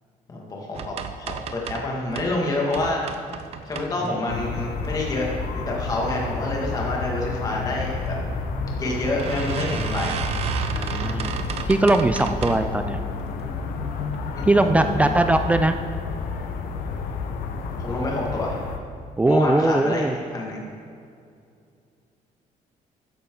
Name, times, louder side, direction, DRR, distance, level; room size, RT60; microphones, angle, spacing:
voice 1, 0.3-3.0 3.7-5.3 5.6-8.1 8.7-10.2 14.3-14.4 14.7-15.1 17.8-18.6 19.3-20.0 20.3-20.6, left 2 dB, 25° left, -2 dB, 2.0 m, -27 dB
sound 1, 0.7-2.4 2.7-4.3 4.8-5.4 5.9-6.3 6.5-6.6 6.9-7.0 8.1-8.2 8.6-8.7 9.2-12.8 13.2-13.6 14.1-14.2 14.6-14.7, right 6 dB, 45° right, 0.7 m, -32 dB
sound 2, 4.3-18.8, left 4 dB, 80° left, 1.0 m, -30 dB
voice 2, 10.7-11.3 11.7-13.0 14.4-15.8 19.2-20.2, right 2 dB, 10° right, 7 dB, 0.3 m, -20 dB
14.0 x 9.7 x 3.9 m, 2.3 s
cardioid pair, 175°, 14 cm